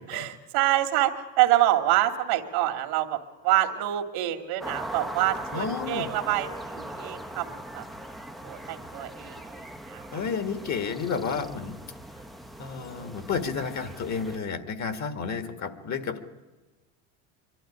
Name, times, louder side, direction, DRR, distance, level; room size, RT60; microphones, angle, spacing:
voice 1, 0.1-3.2 3.4-7.8 8.4-9.6 9.9-10.2, right 14 dB, 75° right, 5 dB, 2.3 m, -26 dB
sound 1, 4.6-14.4, right 1 dB, ahead, 0.7 m, -40 dB
voice 2, 5.5-6.1 10.1-11.7 12.6-16.3, left 5 dB, 40° left, 10 dB, 1.8 m, -31 dB
24.0 x 12.0 x 10.0 m, 1.2 s
supercardioid pair, 95°, 42 cm